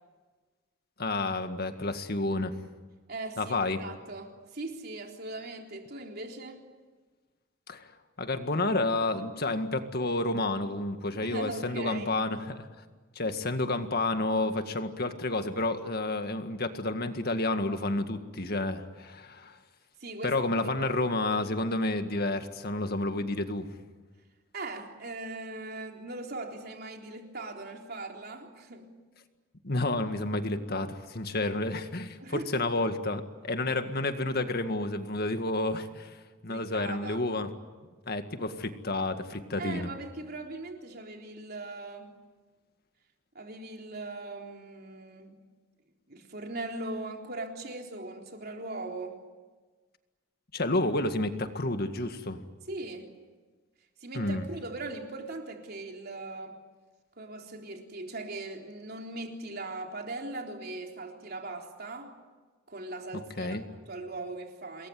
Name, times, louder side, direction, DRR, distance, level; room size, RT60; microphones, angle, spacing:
voice 1, 1.0-2.6 3.4-3.8 7.7-7.9 8.2-12.7 13.2-19.6 20.2-23.7 29.6-36.2 36.4-37.5 38.1-39.9 50.5-52.4 54.1-54.4 63.4-63.6, left 2 dB, 50° left, 8 dB, 1.9 m, -30 dB
voice 2, 3.1-6.6 11.2-12.2 20.0-20.4 20.8-20.9 24.5-28.9 32.2-32.6 36.5-37.2 39.6-42.1 43.3-45.4 46.1-49.2 52.7-53.1 54.0-56.6 57.2-62.1 62.7-64.9, right 2 dB, 50° right, 2 dB, 3.9 m, -40 dB
27.5 x 21.5 x 9.4 m, 1.4 s
head